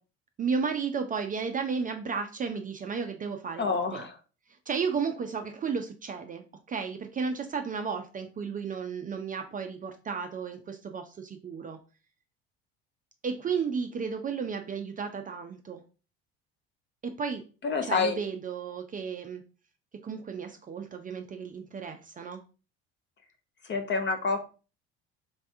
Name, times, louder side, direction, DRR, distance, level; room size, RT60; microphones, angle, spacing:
voice 1, 0.4-4.1 4.7-11.8 13.2-15.8 17.0-17.5 17.9-19.4 19.9-22.4, right 5 dB, 25° right, 5 dB, 0.5 m, -33 dB
voice 2, 3.6-4.2 17.6-18.2 23.6-24.5, left 4 dB, 35° left, 7 dB, 0.7 m, -28 dB
3.3 x 3.3 x 2.6 m, 0.34 s
hypercardioid pair, 65°, 33 cm